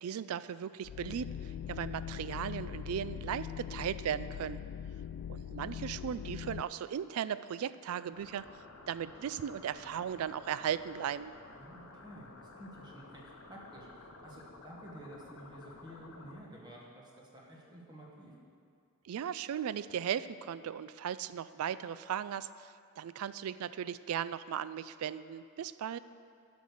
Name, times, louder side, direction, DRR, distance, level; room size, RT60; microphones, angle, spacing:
voice 1, 0.0-4.6 5.3-11.3 19.0-26.0, right 8 dB, 75° right, 16 dB, 0.3 m, -37 dB
sound 1, 0.8-6.6, left 9 dB, 85° left, 0.3 m, -41 dB
sound 2, 8.1-16.4, left 3 dB, 65° left, 0.8 m, -53 dB
voice 2, 11.6-18.3, right 1 dB, 20° right, -4 dB, 1.8 m, -51 dB
11.5 x 5.3 x 6.4 m, 2.4 s
head